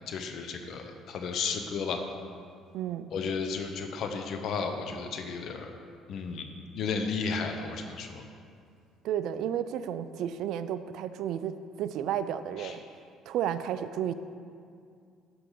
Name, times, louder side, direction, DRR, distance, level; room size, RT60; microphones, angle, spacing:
voice 1, 0.1-2.0 3.1-5.7 6.1-6.5 6.7-8.2 12.6-12.8, left 5 dB, 60° left, 5 dB, 0.8 m, -33 dB
voice 2, 2.7-3.1 9.0-12.8 13.3-14.1, right 10 dB, 70° right, 12 dB, 0.3 m, -32 dB
12.5 x 4.7 x 3.8 m, 2.3 s
cardioid pair, 105°, 0 cm